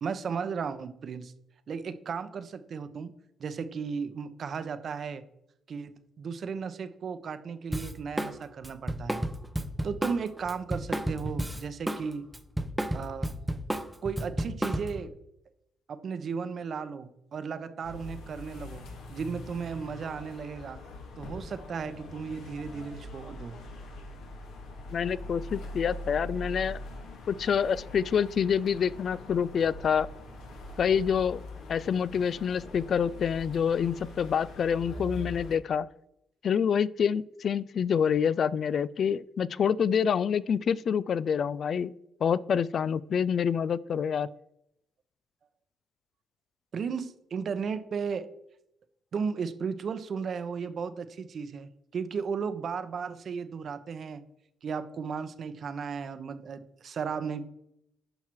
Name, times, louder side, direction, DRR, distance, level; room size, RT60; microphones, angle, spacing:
voice 1, 0.0-1.3 1.7-3.1 3.4-5.2 5.7-9.2 9.8-12.3 12.9-13.4 14.0-15.1 15.9-20.8 21.2-23.6 46.7-48.3 49.1-54.2 54.6-57.5, right 6 dB, 55° right, 12 dB, 0.8 m, -35 dB
Drum kit, 7.7-8.3 8.6-12.0 12.3-15.1, right 1 dB, 5° right, 0.7 m, -32 dB
sound 1, 17.8-35.6, left 1 dB, 85° left, 2.1 m, -43 dB
voice 2, 24.9-26.8 27.3-30.1 30.8-31.4 31.7-35.9 36.4-41.9 42.2-44.3, left 7 dB, 55° left, 19 dB, 0.3 m, -27 dB
10.5 x 5.7 x 4.6 m, 0.79 s
cardioid pair, 90°, 0 cm